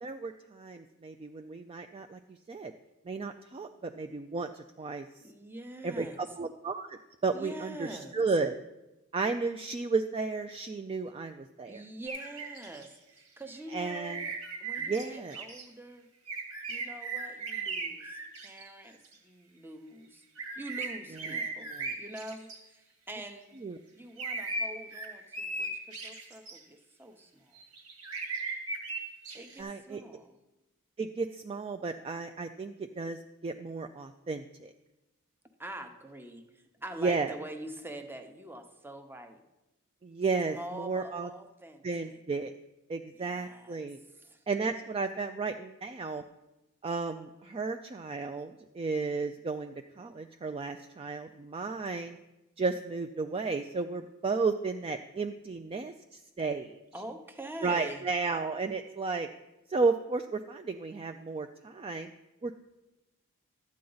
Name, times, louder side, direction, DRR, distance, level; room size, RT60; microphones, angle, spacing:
voice 1, 0.0-2.2 2.5-2.7 3.1-5.1 5.8-8.5 9.1-11.8 13.7-14.2 14.8-15.4 21.2-21.4 21.7-21.9 23.6-23.8 29.6-30.0 31.0-34.7 37.0-37.3 40.0-41.3 41.8-42.5 42.9-44.0 44.5-46.2 46.8-52.2 52.6-56.8 57.6-59.3 59.7-62.1 62.4-62.5, right 4 dB, 25° right, 8 dB, 0.3 m, -33 dB
voice 2, 5.2-6.2 7.3-8.2 11.7-16.1 16.7-20.2 20.6-21.7 22.0-23.6 23.9-27.6 29.3-30.4 35.6-39.4 40.4-42.2 43.1-43.9 44.1-44.4 51.7-51.8 56.9-58.0, right 1 dB, 10° right, 6 dB, 0.8 m, -45 dB
sound 1, 12.1-12.9 13.9-15.0 15.3-15.6 16.3-19.1 20.4-22.6 24.2-26.6 27.5-29.6, right 3 dB, 65° right, 2.0 m, -37 dB
12.5 x 8.5 x 3.9 m, 1.0 s
head